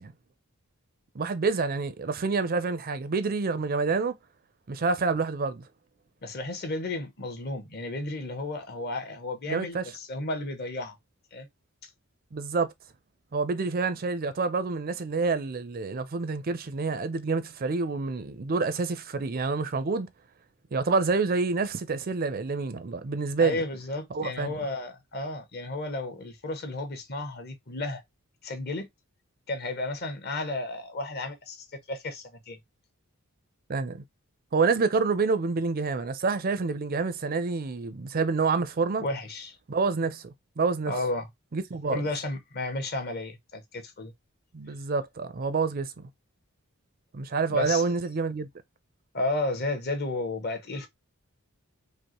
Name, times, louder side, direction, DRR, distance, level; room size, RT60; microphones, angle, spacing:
voice 1, 1.1-4.1 4.7-5.6 9.5-9.8 12.3-12.7 13.3-20.1 20.7-23.6 24.1-24.5 33.7-34.0 34.5-39.0 39.7-40.9 41.5-42.0 44.5-46.1 47.1-48.5, right 4 dB, 40° right, 0.4 m, -27 dB
voice 2, 6.2-10.9 11.3-11.5 23.4-28.0 28.4-28.9 29.5-32.6 39.0-39.6 40.9-41.3 41.9-44.1 47.5-47.8 49.1-50.9, left 2 dB, 45° left, 0.9 m, -33 dB
5.2 x 2.1 x 2.9 m
head